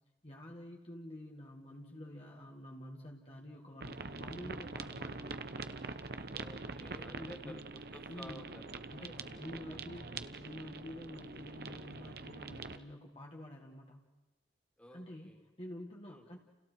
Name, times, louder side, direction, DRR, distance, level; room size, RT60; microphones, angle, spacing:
voice 1, 0.2-5.5 7.1-7.6 8.1-8.5 8.9-10.1 10.4-14.0 14.9-16.4, left 1 dB, 30° left, -1 dB, 1.9 m, -49 dB
sound 1, 3.8-12.8, right 3 dB, 55° right, 1.0 m, -44 dB
voice 2, 6.3-10.4 14.8-15.4 16.1-16.2, equal, 5° left, 2 dB, 2.7 m, -54 dB
30.0 x 30.0 x 4.6 m, 1.1 s
head